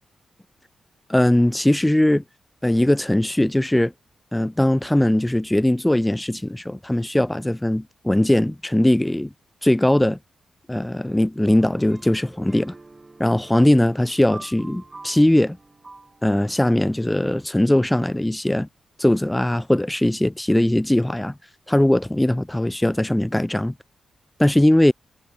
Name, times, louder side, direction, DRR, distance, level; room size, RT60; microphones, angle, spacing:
voice 1, 1.1-2.2 2.6-3.9 4.3-9.3 9.6-10.2 10.7-12.7 13.2-15.6 16.2-18.7 19.0-21.3 21.7-23.7 24.4-24.9, left 1 dB, 10° left, 0.6 m, -20 dB
sound 1, 11.5-16.5, right 3 dB, 25° right, 4.7 m, -45 dB
cardioid pair, 95°, 0 cm